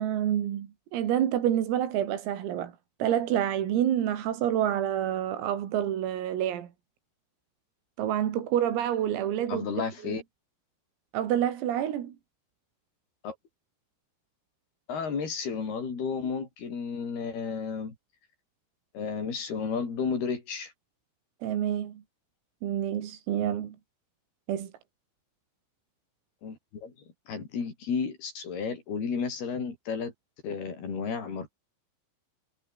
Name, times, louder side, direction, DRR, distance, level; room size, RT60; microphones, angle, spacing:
voice 1, 0.0-2.7 3.0-6.7 8.0-9.7 10.0-10.2 11.1-12.1 21.4-22.0 22.6-23.8 24.5-24.7, right 10 dB, 85° right, 5.4 m, -28 dB
voice 2, 9.5-10.2 13.2-13.3 14.9-18.0 18.9-20.7 26.4-26.9 27.3-30.1 30.4-31.5, left 5 dB, 50° left, 7.3 m, -32 dB
omnidirectional pair, 5.9 m